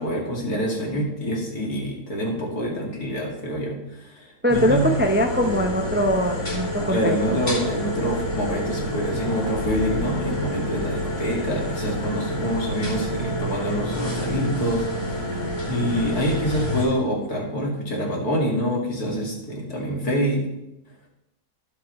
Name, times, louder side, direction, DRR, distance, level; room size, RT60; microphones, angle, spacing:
voice 1, 0.0-4.9 6.9-20.5, equal, 55° left, -2 dB, 3.1 m, -26 dB
voice 2, 4.4-7.1, equal, 10° right, 2 dB, 0.5 m, -22 dB
sound 1, 4.5-16.8, left 1 dB, 40° left, 4.8 m, -28 dB
20.0 x 7.7 x 3.2 m, 0.88 s
omnidirectional pair, 1.9 m